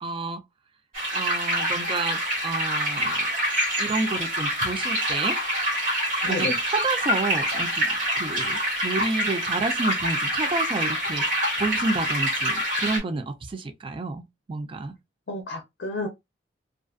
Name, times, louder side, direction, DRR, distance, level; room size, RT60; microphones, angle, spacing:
voice 1, 0.0-0.4 1.1-3.3 3.8-5.4 6.2-15.0, right 3 dB, 30° right, 0.3 m, -30 dB
sound 1, 0.9-13.0, equal, 45° right, 1.3 m, -26 dB
voice 2, 6.3-6.6 15.3-16.1, left 2 dB, 65° left, 0.5 m, -31 dB
2.4 x 2.4 x 2.2 m
head